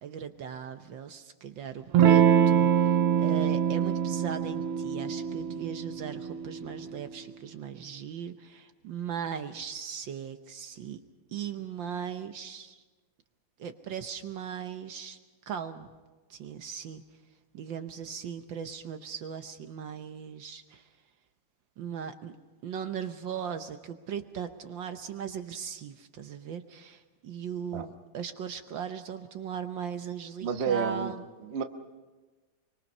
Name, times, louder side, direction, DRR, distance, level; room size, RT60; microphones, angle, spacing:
voice 1, 0.0-11.0 11.3-12.8 13.6-15.2 15.5-15.9 16.3-17.0 17.5-20.8 21.8-22.4 22.6-31.2, right 7 dB, 65° right, 8 dB, 1.5 m, -38 dB
Electric guitar / Strum, 1.9-7.1, right 8 dB, 85° right, 1.8 m, -24 dB
voice 2, 30.4-31.1 31.4-31.6, right 6 dB, 40° right, 6 dB, 1.0 m, -30 dB
24.0 x 24.0 x 5.5 m, 1.3 s
omnidirectional pair, 2.4 m